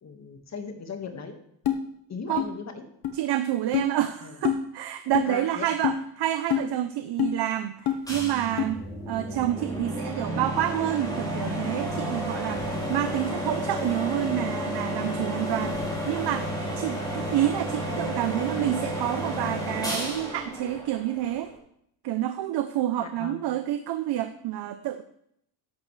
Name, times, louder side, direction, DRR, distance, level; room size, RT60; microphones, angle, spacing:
voice 1, 0.0-1.4 2.1-2.9 4.2-4.4 5.3-5.7 12.3-12.6 23.0-23.4, left 5 dB, 35° left, 5 dB, 1.8 m, -38 dB
sound 1, 1.6-1.8 2.4-2.5 3.0-3.1 3.7-3.9 4.4-4.6 5.1-5.3 5.8-6.0 6.5-6.7 7.2-7.3 7.8-8.0 8.6-8.7, left 10 dB, 55° left, 1.3 m, -25 dB
voice 2, 3.1-12.6 12.9-21.5 22.0-25.0, right 13 dB, 60° right, 9 dB, 0.8 m, -28 dB
sound 2, 8.1-21.6, equal, 10° left, 4.0 m, -31 dB
13.5 x 11.5 x 3.3 m, 0.72 s
cardioid pair, 135°, 45 cm